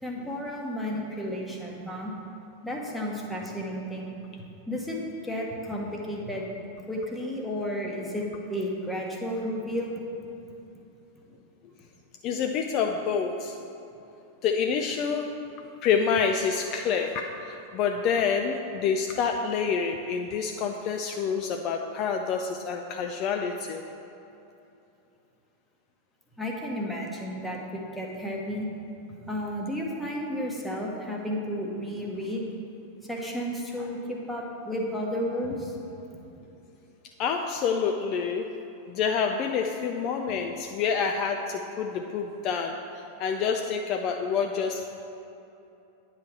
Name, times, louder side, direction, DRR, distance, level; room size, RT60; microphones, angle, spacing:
voice 1, 0.0-2.1 2.6-4.2 4.7-5.0 5.2-6.5 6.9-8.2 8.5-9.9 26.4-28.7 29.2-32.5 33.1-35.8 43.4-43.6, equal, 5° left, -2 dB, 1.0 m, -32 dB
voice 2, 12.2-13.6 14.4-15.3 15.8-23.8 37.2-38.5 38.9-44.8, left 6 dB, 40° left, 4 dB, 0.3 m, -27 dB
9.5 x 3.2 x 5.9 m, 2.9 s
figure-of-eight pair, 90°, 0 cm